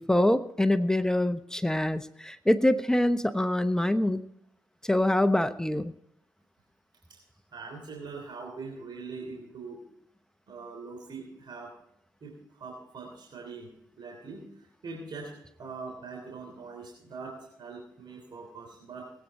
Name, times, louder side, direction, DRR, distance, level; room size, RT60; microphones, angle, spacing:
voice 1, 0.0-4.2 4.8-5.9, left 1 dB, 5° left, 11 dB, 0.9 m, -25 dB
voice 2, 7.5-9.8 10.5-11.7 12.2-13.7 14.0-19.1, right 4 dB, 65° right, 1 dB, 3.3 m, -42 dB
19.0 x 8.6 x 4.3 m, 0.75 s
cardioid pair, 55°, 8 cm